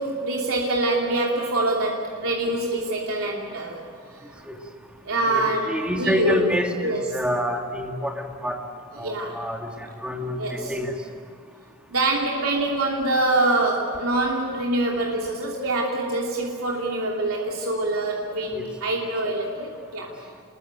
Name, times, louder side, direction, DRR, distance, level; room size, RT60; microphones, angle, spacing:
voice 1, 0.0-3.8 5.0-6.4 6.8-7.0 9.0-9.4 10.3-10.7 11.9-20.1, right 2 dB, 90° right, -2 dB, 3.0 m, -25 dB
voice 2, 5.3-8.6 9.0-10.9 18.5-18.7, equal, 5° right, 1 dB, 2.7 m, -27 dB
27.5 x 22.0 x 9.1 m, 2.3 s
head